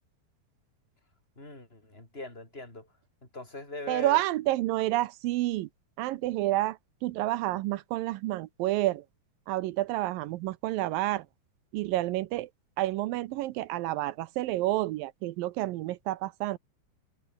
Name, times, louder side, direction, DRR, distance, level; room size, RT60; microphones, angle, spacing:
voice 1, 1.4-2.9 3.3-4.2, left 2 dB, 15° left, 6.6 m, -41 dB
voice 2, 3.9-5.7 6.0-9.0 9.5-11.3 11.7-12.5 12.8-16.6, right 16 dB, 80° right, 2.4 m, -29 dB
omnidirectional pair, 4.2 m